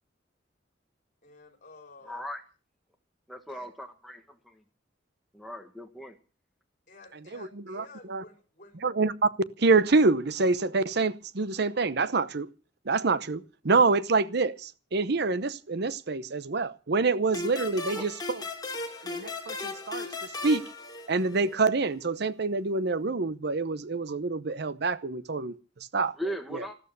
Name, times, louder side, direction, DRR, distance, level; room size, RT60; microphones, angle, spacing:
voice 1, 1.2-2.2 3.5-3.7 6.9-8.8, left 2 dB, 45° left, 4.5 m, -52 dB
voice 2, 2.0-2.4 3.3-4.2 5.3-6.2 17.9-18.1 26.1-26.8, equal, ahead, 1.6 m, -38 dB
voice 3, 7.3-8.2 8.8-9.3 9.6-12.5 12.9-18.1 19.0-20.6 21.1-26.1, right 3 dB, 60° right, 0.8 m, -26 dB
sound 1, 17.3-21.7, left 3 dB, 20° left, 3.1 m, -37 dB
14.5 x 13.5 x 6.7 m
head